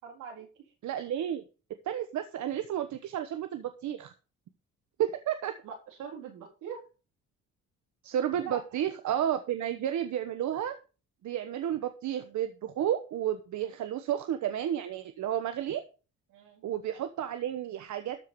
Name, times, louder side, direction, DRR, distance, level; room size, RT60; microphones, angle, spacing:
voice 1, 0.0-0.5 5.6-6.8 8.4-8.6 13.6-13.8 16.3-16.6, right 6 dB, 90° right, 1 dB, 4.0 m, -43 dB
voice 2, 0.8-1.4 1.8-4.1 5.0-5.5 8.0-10.8 11.2-15.8 16.6-18.2, right 10 dB, 75° right, 9 dB, 1.1 m, -32 dB
13.5 x 4.8 x 6.8 m, 0.34 s
cardioid pair, 90°, 30 cm